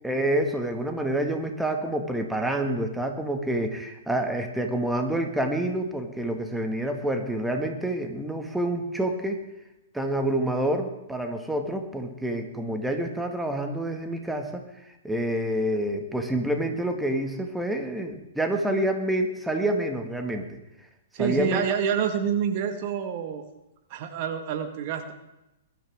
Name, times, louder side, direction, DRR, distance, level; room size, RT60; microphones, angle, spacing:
voice 1, 0.0-9.4 9.9-14.6 15.0-20.4 21.2-21.7, right 1 dB, 5° right, 4 dB, 1.8 m, -27 dB
voice 2, 21.1-23.4 23.9-25.1, right 8 dB, 45° right, 6 dB, 1.6 m, -27 dB
21.5 x 12.5 x 3.6 m, 0.94 s
figure-of-eight pair, 115°, 0 cm